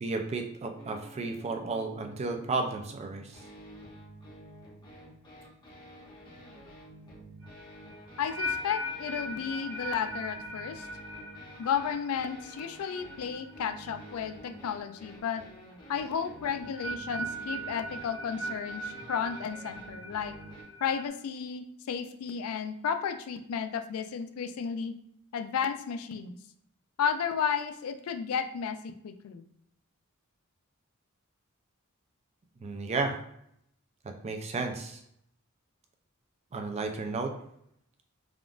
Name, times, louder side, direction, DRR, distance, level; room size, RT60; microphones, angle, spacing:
voice 1, 0.0-3.4 32.6-33.2 34.2-35.0 36.5-37.3, right 3 dB, 30° right, 4 dB, 0.3 m, -33 dB
sound 1, 0.8-20.6, right 1 dB, 20° left, 0.8 m, -50 dB
sound 2, 7.4-14.6 14.8-15.2 16.5-21.1, equal, 70° right, 0.8 m, -40 dB
voice 2, 8.2-10.9 11.6-15.4 15.9-20.4 20.8-24.9 25.3-26.4 27.0-29.4, left 7 dB, 75° left, 8 dB, 0.3 m, -33 dB
3.5 x 2.4 x 2.4 m, 0.73 s
head